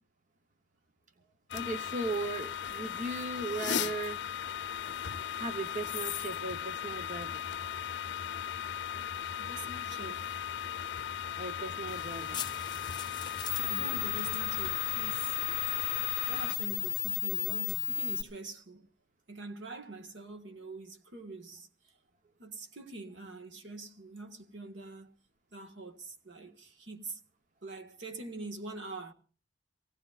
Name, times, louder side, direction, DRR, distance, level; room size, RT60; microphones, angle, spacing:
sound 1, 1.5-16.5, left 9 dB, 65° left, 0.6 m, -37 dB
voice 1, 1.5-4.3 5.4-7.4 8.8-8.9 11.4-12.4, right 2 dB, 45° right, 0.9 m, -37 dB
voice 2, 9.4-10.4 13.6-15.3 16.3-18.9 19.3-21.7 22.4-25.1 25.5-27.2 27.6-29.1, right 3 dB, 70° right, 1.6 m, -44 dB
sound 2, 11.9-18.2, left 14 dB, 25° left, 1.1 m, -34 dB
24.5 x 17.5 x 2.4 m
head